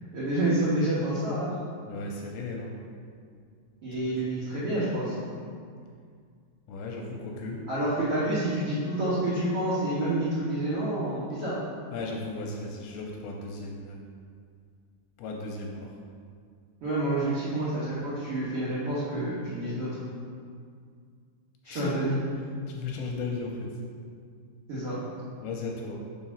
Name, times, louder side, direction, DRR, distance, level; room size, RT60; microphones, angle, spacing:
voice 1, 0.1-1.5 3.8-5.1 7.7-11.5 16.8-19.9 21.6-22.2 24.7-25.0, right 1 dB, 70° right, -10 dB, 1.3 m, -28 dB
voice 2, 1.9-2.8 3.9-4.2 6.7-7.7 11.9-14.0 15.2-15.9 21.7-22.0 22.7-23.8 25.4-26.0, left 3 dB, 80° left, 0 dB, 2.4 m, -36 dB
5.8 x 4.8 x 5.6 m, 2.2 s
omnidirectional pair, 4.8 m